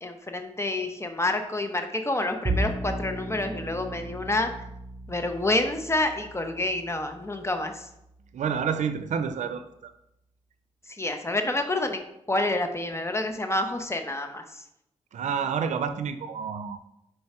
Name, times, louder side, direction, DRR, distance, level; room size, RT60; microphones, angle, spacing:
voice 1, 0.0-4.5 5.1-7.9 11.0-12.0 12.3-14.4, left 2 dB, 25° left, 6 dB, 0.9 m, -28 dB
Bowed string instrument, 2.4-8.9, right 2 dB, 35° right, 0.8 m, -36 dB
voice 2, 8.3-9.9 15.1-16.9, right 7 dB, 90° right, 10 dB, 0.5 m, -29 dB
4.7 x 4.7 x 4.3 m, 0.81 s
cardioid pair, 55°, 12 cm